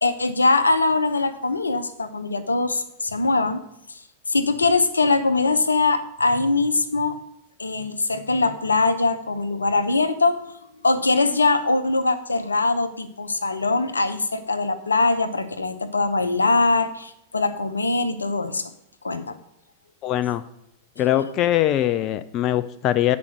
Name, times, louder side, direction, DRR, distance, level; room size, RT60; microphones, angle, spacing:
voice 1, 0.0-3.6 3.9-4.0 4.3-7.2 7.6-10.4 10.8-18.7 19.0-19.4, left 3 dB, 85° left, 11 dB, 0.7 m, -22 dB
voice 2, 20.0-20.4 21.0-23.2, left 12 dB, 35° left, 11 dB, 0.4 m, -22 dB
8.3 x 5.1 x 6.3 m, 0.79 s
figure-of-eight pair, 95°, 0 cm